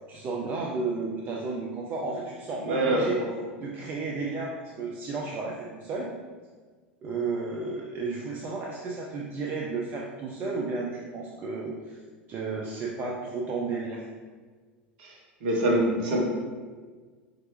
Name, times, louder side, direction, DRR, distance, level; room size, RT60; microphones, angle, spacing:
voice 1, 0.1-3.2 3.6-6.1 7.0-12.0 12.3-14.0, right 3 dB, 30° right, -2 dB, 0.4 m, -33 dB
voice 2, 2.6-3.3 15.0-15.1 15.4-16.2, right 1 dB, 55° right, -2 dB, 1.0 m, -25 dB
4.4 x 2.5 x 3.0 m, 1.5 s
figure-of-eight pair, 80°, 6 cm